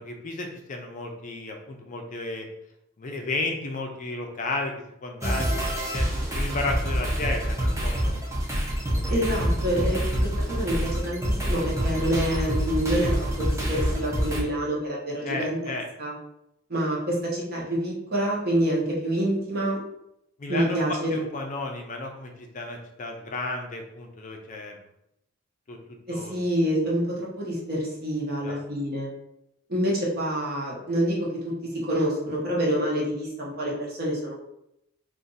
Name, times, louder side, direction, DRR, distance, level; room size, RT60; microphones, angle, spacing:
voice 1, 0.0-2.5 3.0-4.7 5.0-6.1 6.3-8.1 8.9-9.3 15.2-15.8 20.4-24.8 25.7-25.8 26.1-26.5 28.4-28.6, left 2 dB, 40° left, 2 dB, 0.5 m, -33 dB
sound 1, 5.2-14.4, equal, 15° right, 0.8 m, -26 dB
voice 2, 9.1-13.1 13.4-16.1 16.7-19.8 20.5-21.2 26.1-29.1 29.7-34.4, equal, 50° right, -4 dB, 1.1 m, -27 dB
2.6 x 2.5 x 3.9 m, 0.81 s
head